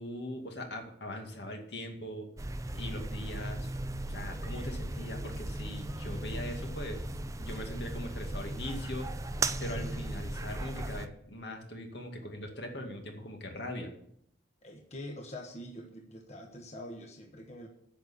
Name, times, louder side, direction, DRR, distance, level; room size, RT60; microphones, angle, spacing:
voice 1, 0.0-2.3 2.7-3.7 4.1-7.0 7.4-9.1 9.6-13.9, left 1 dB, 70° left, 3 dB, 2.2 m, -41 dB
sound 1, 2.4-11.1, right 1 dB, 20° right, 0.6 m, -37 dB
voice 2, 14.6-17.7, left 1 dB, 40° left, 2 dB, 1.4 m, -45 dB
10.0 x 6.6 x 8.6 m, 0.70 s
head